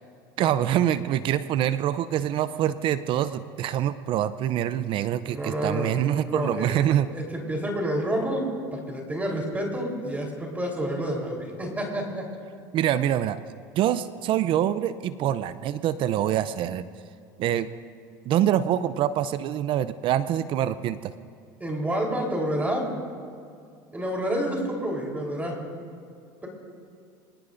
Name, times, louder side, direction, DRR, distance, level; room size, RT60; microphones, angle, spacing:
voice 1, 0.4-7.1 12.7-13.4 13.7-16.8 17.4-17.7 18.2-21.1, right 11 dB, 55° right, 14 dB, 0.6 m, -25 dB
voice 2, 5.3-5.9 6.2-8.4 8.7-12.2 21.6-22.9 23.9-25.5, equal, 15° right, 0 dB, 3.9 m, -29 dB
24.0 x 20.5 x 2.6 m, 2.3 s
hypercardioid pair, 90°, 11 cm